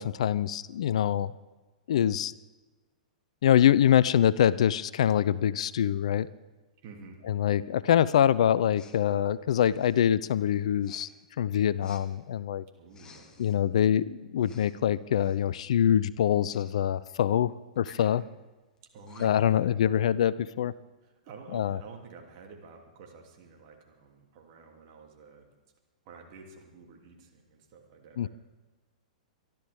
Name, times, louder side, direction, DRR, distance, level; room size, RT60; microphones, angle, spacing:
voice 1, 0.0-1.3 1.9-2.3 3.4-6.3 7.3-11.1 11.4-12.6 13.4-18.2 19.2-20.7 21.5-21.8 28.2-28.3, left 10 dB, 55° left, 19 dB, 0.4 m, -24 dB
voice 2, 6.8-7.2 12.8-13.5 18.2-18.3 18.9-20.1 21.0-25.5 26.0-28.3, right 4 dB, 40° right, 1 dB, 2.9 m, -50 dB
Respiratory sounds, 8.7-9.0 9.6-10.1 10.8-11.1 11.8-12.0 12.9-13.6 14.4-14.8 15.1-15.4 16.5-16.7 17.8-18.1 18.8-18.9 19.1-19.5, left 5 dB, 20° left, 1.5 m, -54 dB
25.5 x 12.0 x 3.6 m, 1.2 s
figure-of-eight pair, 105°, 4 cm